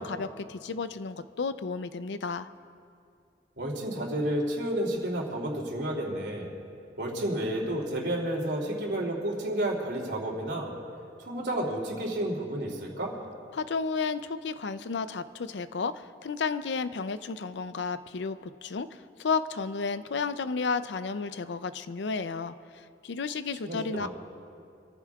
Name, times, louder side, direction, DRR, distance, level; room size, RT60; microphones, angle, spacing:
voice 1, 0.0-2.5 13.5-22.5 23.0-24.1, left 4 dB, 85° left, 13 dB, 0.5 m, -32 dB
voice 2, 3.6-6.5 7.0-10.7 11.2-13.1 23.6-24.1, right 1 dB, 80° right, -1 dB, 2.8 m, -31 dB
26.5 x 14.5 x 2.4 m, 2.5 s
head